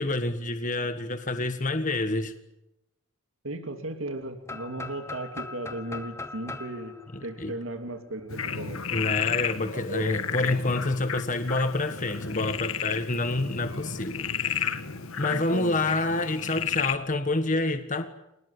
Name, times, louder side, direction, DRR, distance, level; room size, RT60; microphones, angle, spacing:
voice 1, 0.0-2.3 7.1-7.5 8.9-14.8 15.2-18.1, left 2 dB, 35° left, 1.5 m, -28 dB
voice 2, 3.4-7.0 7.2-8.8 9.7-10.2 10.5-10.6 15.3-15.8, right 1 dB, 70° right, 2.6 m, -36 dB
sound 1, 4.5-8.3, left 3 dB, 15° left, 1.2 m, -40 dB
Frog, 8.3-17.0, left 7 dB, 80° left, 1.7 m, -32 dB
26.5 x 19.5 x 10.0 m
head